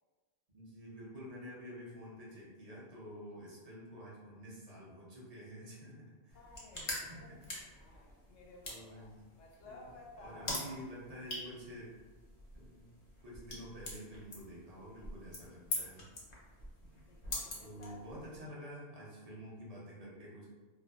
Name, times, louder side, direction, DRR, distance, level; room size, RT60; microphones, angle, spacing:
voice 1, 0.5-6.4 6.9-7.4 8.7-9.2 9.6-9.8 10.2-11.9 12.5-12.9 13.2-16.1 17.6-20.5, equal, 45° right, -5 dB, 0.5 m, -49 dB
voice 2, 6.3-10.7 17.1-18.3, left 2 dB, 85° left, -2 dB, 1.0 m, -55 dB
sound 1, 6.3-18.4, left 1 dB, 45° left, 0.6 m, -45 dB
2.5 x 2.2 x 2.2 m, 1.3 s
omnidirectional pair, 1.3 m